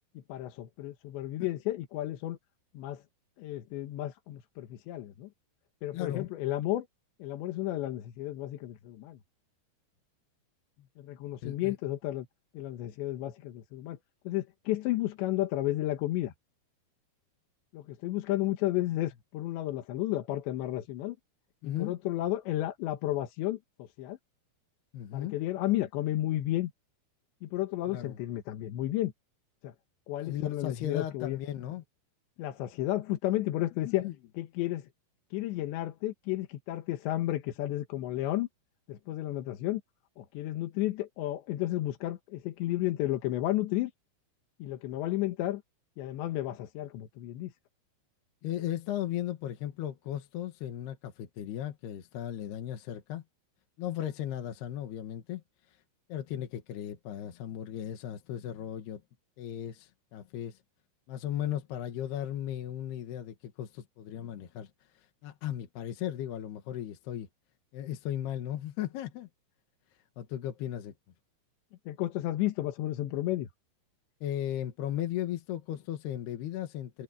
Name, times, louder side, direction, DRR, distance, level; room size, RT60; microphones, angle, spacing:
voice 1, 0.2-2.4 2.8-3.0 3.4-5.3 5.8-6.9 7.2-9.2 11.0-12.3 12.6-14.0 14.3-16.3 17.7-21.2 21.6-24.2 25.1-26.7 27.4-29.1 29.6-29.7 30.1-31.4 32.4-34.1 34.4-34.9 35.3-38.5 38.9-39.8 40.2-43.9 44.6-45.6 46.0-47.5 71.9-73.5, left 15 dB, 90° left, 3.6 m, -32 dB
voice 2, 5.9-6.3 11.4-11.7 21.6-22.0 24.9-25.4 27.9-28.2 30.3-31.8 33.9-34.1 48.4-53.2 53.8-55.4 56.1-59.0 59.4-60.6 61.1-64.7 65.2-67.3 67.7-69.3 70.2-70.9 74.2-77.0, left 11 dB, 70° left, 3.5 m, -36 dB
omnidirectional pair, 4.9 m